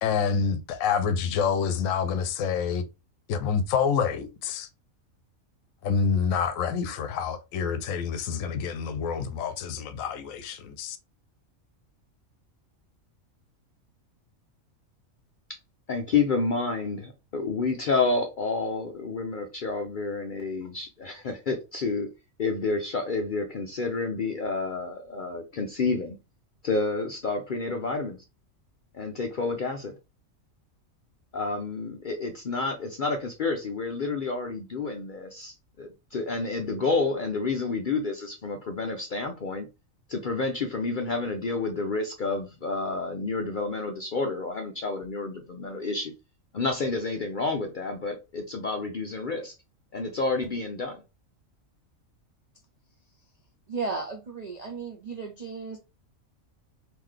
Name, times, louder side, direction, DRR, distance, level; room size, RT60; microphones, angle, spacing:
voice 1, 0.0-2.9 3.3-4.7 5.8-11.0, left 6 dB, 80° left, 1.0 m, -27 dB
voice 2, 15.9-22.1 22.4-26.2 26.6-28.2 28.9-29.9 31.3-39.7 40.1-46.1 46.5-49.5 49.9-51.0, left 3 dB, 60° left, 0.5 m, -29 dB
voice 3, 53.7-55.8, right 4 dB, 50° right, 0.5 m, -34 dB
3.8 x 2.9 x 3.1 m
omnidirectional pair, 1.4 m